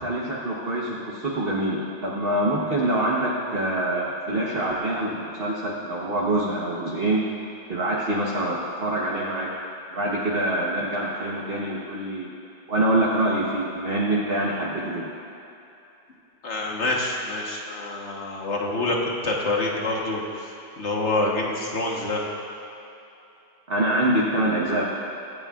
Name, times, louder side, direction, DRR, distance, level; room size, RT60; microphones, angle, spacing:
voice 1, 0.0-7.2 7.7-9.5 9.9-12.3 12.7-15.1 23.7-24.8, right 1 dB, 35° right, -5 dB, 1.0 m, -25 dB
voice 2, 16.4-20.5 20.8-22.2, left 2 dB, 40° left, -2 dB, 1.4 m, -26 dB
24.5 x 8.7 x 2.5 m, 2.9 s
omnidirectional pair, 2.2 m